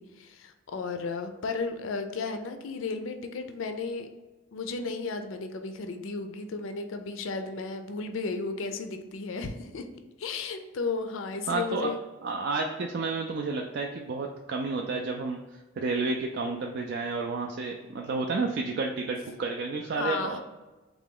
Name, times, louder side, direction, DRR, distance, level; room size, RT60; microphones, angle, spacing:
voice 1, 0.0-4.1 4.5-9.9 10.2-12.0 19.9-20.4, left 4 dB, 70° left, 7 dB, 0.4 m, -34 dB
voice 2, 11.5-11.9 12.2-15.4 15.8-20.4, right 3 dB, 50° right, 2 dB, 0.3 m, -31 dB
3.8 x 2.9 x 3.7 m, 1.2 s
head